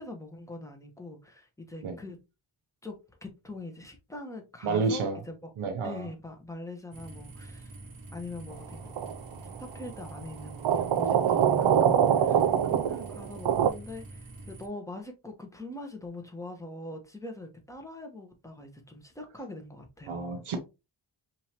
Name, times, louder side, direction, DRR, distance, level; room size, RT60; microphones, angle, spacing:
voice 1, 0.0-2.2 2.8-5.5 5.8-7.7 8.1-8.9 9.6-20.4, left 2 dB, 5° left, 1.2 m, -43 dB
voice 2, 4.6-5.2 5.6-6.1 20.1-20.6, right 4 dB, 85° right, 1.0 m, -30 dB
sound 1, 6.9-14.7, right 2 dB, 45° right, 1.2 m, -46 dB
sound 2, 9.0-9.3 10.6-13.7, right 9 dB, 65° right, 0.6 m, -24 dB
5.4 x 2.9 x 3.0 m
wide cardioid pair, 85°, 48 cm